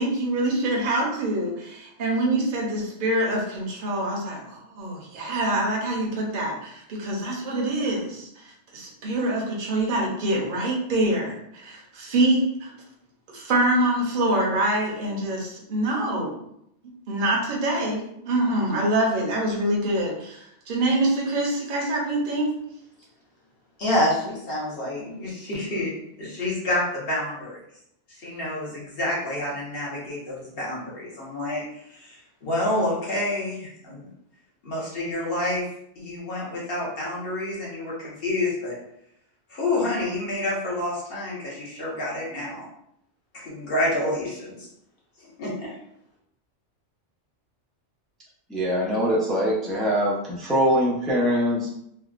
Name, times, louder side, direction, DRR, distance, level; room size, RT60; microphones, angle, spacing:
voice 1, 0.0-12.7 13.3-16.4 17.1-22.5, right 1 dB, 50° right, -2 dB, 0.9 m, -25 dB
voice 2, 23.8-25.9 26.2-27.6 28.1-34.1 34.6-35.7 36.0-38.8 39.5-42.6 43.3-44.7 45.4-45.8, left 1 dB, 55° left, -6 dB, 1.2 m, -28 dB
voice 3, 48.5-51.7, equal, ahead, -5 dB, 0.4 m, -23 dB
3.4 x 2.2 x 2.4 m, 0.76 s
omnidirectional pair, 1.2 m